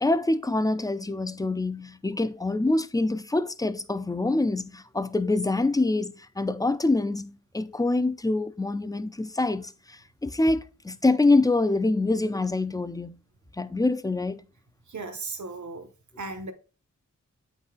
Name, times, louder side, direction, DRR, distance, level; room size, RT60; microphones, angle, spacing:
voice 1, 0.0-13.2 13.6-14.4, left 2 dB, 10° left, 0.4 m, -25 dB
voice 2, 14.9-15.9 16.2-16.5, right 3 dB, 70° right, 1.2 m, -36 dB
8.6 x 4.0 x 3.7 m
wide cardioid pair, 90°, 30 cm